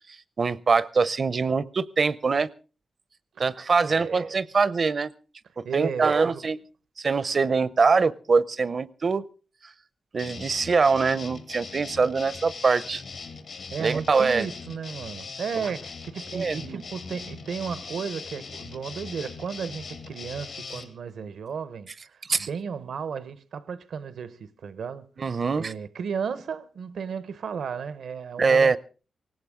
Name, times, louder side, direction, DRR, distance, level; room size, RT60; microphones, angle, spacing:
voice 1, 0.4-2.5 3.4-5.1 5.6-6.6 7.0-9.2 10.1-13.0 13.8-14.5 16.3-16.8 22.3-22.5 25.2-25.7 28.4-28.8, right 4 dB, 55° right, 0.6 m, -23 dB
voice 2, 3.9-4.2 5.6-6.4 13.7-25.1 25.5-28.8, right 6 dB, 80° right, 0.8 m, -34 dB
sound 1, 10.2-20.9, left 4 dB, 75° left, 2.6 m, -40 dB
18.0 x 17.0 x 3.7 m
cardioid pair, 65°, 0 cm